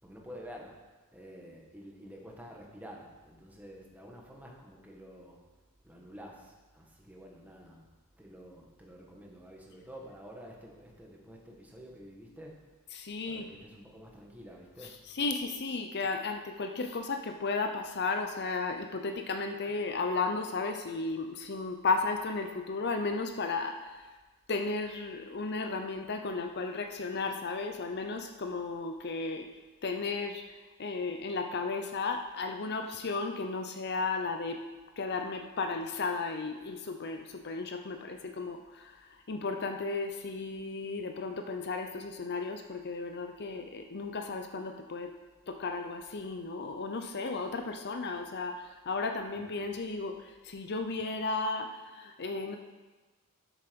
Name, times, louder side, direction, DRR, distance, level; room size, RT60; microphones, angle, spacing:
voice 1, 0.0-0.8 1.1-5.4 5.8-12.7 13.3-15.0 49.4-49.7, equal, 5° right, -1 dB, 1.5 m, -49 dB
voice 2, 12.9-13.5 14.8-24.0 24.5-29.5 29.8-30.4 30.8-34.6 35.0-45.1 45.5-52.6, left 3 dB, 50° left, 6 dB, 0.7 m, -34 dB
12.5 x 6.9 x 5.2 m, 1.3 s
head